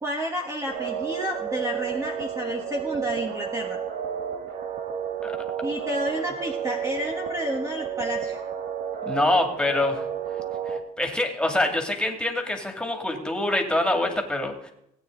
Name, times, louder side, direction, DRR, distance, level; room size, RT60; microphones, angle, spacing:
voice 1, 0.0-3.8 5.6-8.4, equal, 15° right, 2 dB, 1.4 m, -30 dB
sound 1, 0.7-10.8, right 8 dB, 70° right, 1.8 m, -31 dB
voice 2, 9.0-10.0 10.7-14.7, left 1 dB, 5° left, 3 dB, 2.6 m, -25 dB
18.5 x 9.2 x 4.0 m, 0.77 s
cardioid pair, 110°, 17 cm